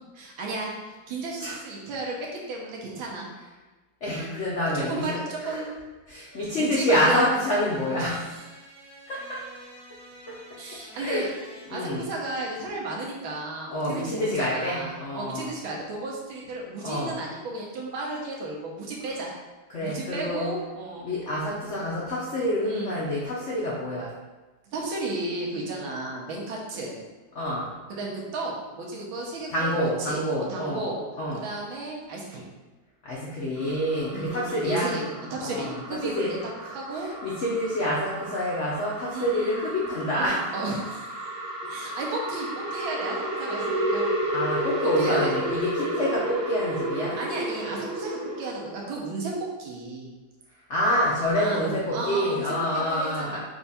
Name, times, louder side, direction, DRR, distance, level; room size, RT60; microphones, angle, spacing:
voice 1, 0.1-0.7 1.1-3.3 4.1-4.3 4.7-5.7 6.5-7.3 8.0-8.2 10.6-11.3 11.7-19.3 19.8-21.1 22.6-22.9 24.7-27.0 27.9-29.7 30.1-30.2 30.5-31.0 31.3-32.5 34.1-35.0 35.3-36.3 36.7-37.1 39.1-39.6 40.1-41.1 41.7-44.0 45.0-45.3 47.2-49.3 49.6-50.1 51.3-53.4, right 2 dB, 80° right, -2 dB, 1.6 m, -33 dB
voice 2, 4.0-5.2 5.4-5.7 6.1-8.2 9.1-9.4 10.3-10.4 10.9-11.3 11.7-12.0 13.7-15.5 16.8-17.2 19.7-20.5 21.0-24.1 27.3-27.7 29.5-30.8 31.2-31.4 33.0-34.9 35.4-35.8 36.0-36.3 36.6-40.4 44.3-47.2 50.7-53.4, equal, 85° left, -6 dB, 0.6 m, -27 dB
sound 1, 6.3-11.8, right 1 dB, 30° right, 0.6 m, -49 dB
sound 2, 33.6-48.7, right 1 dB, 45° right, 1.1 m, -32 dB
4.5 x 2.4 x 4.0 m, 1.2 s
omnidirectional pair, 2.2 m